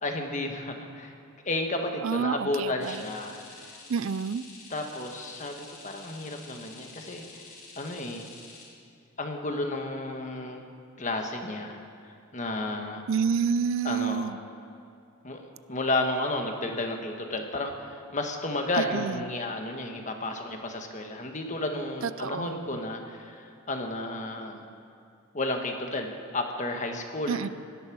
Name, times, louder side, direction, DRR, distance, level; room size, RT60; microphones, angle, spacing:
voice 1, 0.0-1.1 1.4-3.7 4.7-7.5 7.7-8.3 9.2-10.6 11.0-11.8 12.0-13.0 13.8-14.3 15.2-24.7 25.3-27.5, left 2 dB, 35° left, 4 dB, 1.6 m, -32 dB
voice 2, 2.0-3.0 3.9-4.4 13.1-14.4 18.8-19.2 22.0-22.7 27.3-27.5, right 6 dB, 70° right, 16 dB, 0.4 m, -29 dB
sound 1, 2.8-8.7, left 3 dB, 90° left, 3.9 m, -48 dB
17.0 x 12.5 x 6.2 m, 2.5 s
head